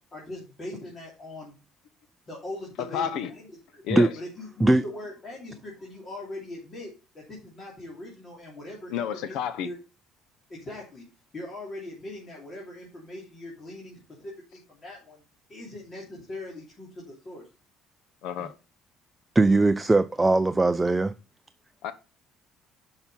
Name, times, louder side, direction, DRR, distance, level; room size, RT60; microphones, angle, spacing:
voice 1, 0.1-1.6 2.3-3.8 4.2-9.8 10.5-11.0 11.3-15.2 15.5-17.5, left 1 dB, 30° left, 3.0 m, -41 dB
voice 2, 2.8-3.3 3.8-4.1 8.9-9.7 18.2-18.5 21.8-21.9, left 9 dB, 80° left, 0.8 m, -30 dB
voice 3, 19.3-21.1, right 2 dB, 10° right, 0.4 m, -20 dB
8.9 x 5.8 x 5.4 m
cardioid pair, 125°, 0 cm